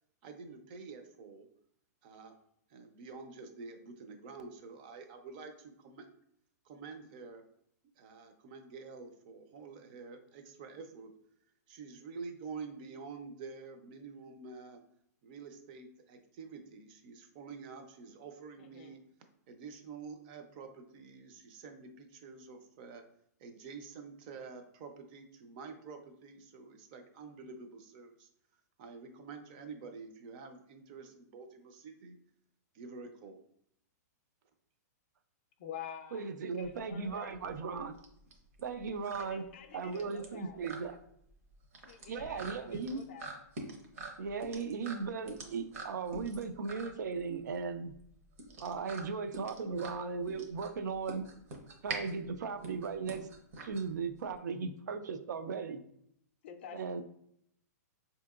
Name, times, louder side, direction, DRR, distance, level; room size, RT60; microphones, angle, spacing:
voice 1, 0.2-1.5 2.0-2.3 2.7-6.1 6.6-7.4 8.0-11.1 11.7-14.8 15.2-19.0 19.5-23.0 23.4-28.3 28.8-32.2 32.7-33.4, right 4 dB, 30° right, 7 dB, 0.4 m, -48 dB
voice 2, 18.6-19.0 35.6-36.3 36.6-37.4 39.1-40.6 41.9-43.3 56.4-57.0, left 8 dB, 40° left, 8 dB, 0.4 m, -48 dB
voice 3, 36.1-38.0 38.6-39.4 39.7-41.0 42.1-43.0 44.2-47.9 48.6-51.2 51.8-53.3 53.6-55.8 56.7-57.0, right 5 dB, 85° right, 9 dB, 0.4 m, -37 dB
sound 1, 36.6-54.4, right 3 dB, 55° right, 0.8 m, -46 dB
4.3 x 2.8 x 2.4 m, 0.70 s
hypercardioid pair, 170°, 9 cm